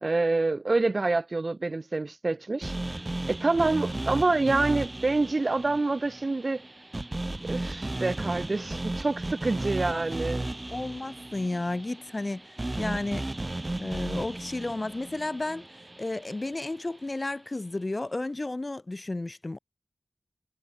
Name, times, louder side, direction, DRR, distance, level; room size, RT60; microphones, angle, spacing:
voice 1, 0.0-6.6 7.4-10.5, right 3 dB, 50° right, 0.5 m, -27 dB
sound 1, 2.6-16.8, right 2 dB, 30° right, 0.9 m, -35 dB
voice 2, 9.6-10.0 10.7-12.4 12.8-13.3 13.8-15.7 16.0-19.6, left 2 dB, 35° left, 5.7 m, -32 dB
cardioid pair, 50°, 0 cm